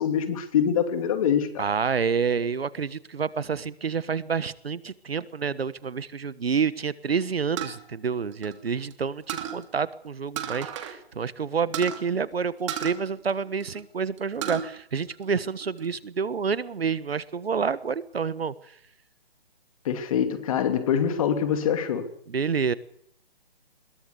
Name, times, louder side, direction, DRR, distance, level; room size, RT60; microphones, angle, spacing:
voice 1, 0.0-1.6 19.8-22.1, left 8 dB, 35° left, 8 dB, 2.8 m, -24 dB
voice 2, 1.6-18.5 22.3-22.7, right 6 dB, 75° right, 17 dB, 1.5 m, -28 dB
sound 1, 7.6-8.9 9.3-9.6 10.4-11.0 11.2-11.3 11.7-12.0 12.7-13.8 14.2-14.7 15.1-15.9, right 9 dB, 30° right, 2.8 m, -33 dB
21.5 x 19.5 x 6.9 m, 0.65 s
hypercardioid pair, 155°, 30 cm